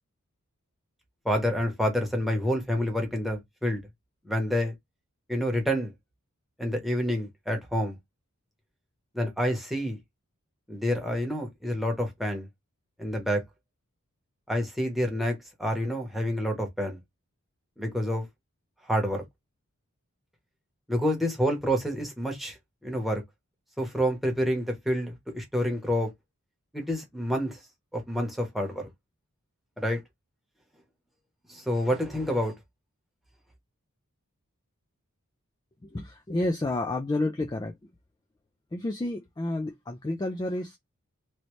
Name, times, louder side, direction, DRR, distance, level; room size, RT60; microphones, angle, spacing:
voice 1, 1.2-3.8 4.2-4.7 5.3-5.9 6.6-8.0 9.1-10.0 10.7-12.5 13.0-13.4 14.5-17.0 17.8-18.2 18.9-19.2 20.9-22.6 22.8-23.2 23.8-26.1 26.7-27.6 27.9-28.9 29.8-30.0 31.5-32.5, equal, ahead, 1.0 m, -28 dB
voice 2, 35.8-37.7 38.7-40.8, left 2 dB, 20° left, 0.3 m, -30 dB
3.1 x 2.7 x 3.1 m
head